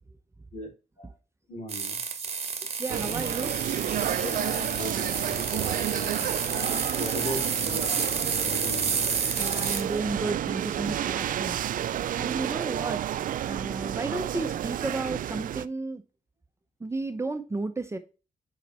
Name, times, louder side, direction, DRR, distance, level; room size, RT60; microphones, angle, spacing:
voice 1, 1.5-2.0 4.2-9.0, left 1 dB, 55° left, 1 dB, 3.6 m, -39 dB
sound 1, 1.7-9.8, right 5 dB, 45° right, 1.4 m, -30 dB
voice 2, 2.8-3.6 9.4-11.6 12.1-13.0 13.4-16.0 16.8-18.0, right 3 dB, 20° right, 9 dB, 0.9 m, -33 dB
sound 2, 2.9-15.7, right 11 dB, 70° right, 0.4 m, -31 dB
6.5 x 5.4 x 4.4 m, 0.32 s
cardioid pair, 75°, 14 cm